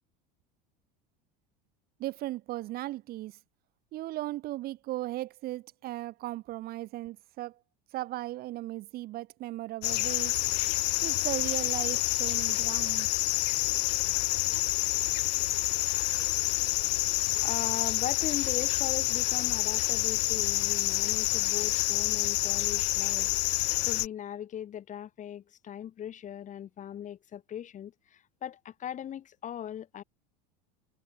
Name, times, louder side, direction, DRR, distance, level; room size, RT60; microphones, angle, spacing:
voice 1, 2.0-3.4 3.9-7.6 7.9-10.4 11.0-13.1, right 16 dB, 50° right, 0.8 m, -37 dB
sound 1, 9.8-24.1, left 21 dB, 80° left, 0.5 m, -28 dB
voice 2, 17.4-23.3 23.8-27.9 28.4-30.0, left 10 dB, 35° left, 2.1 m, -39 dB
supercardioid pair, 105°, 21 cm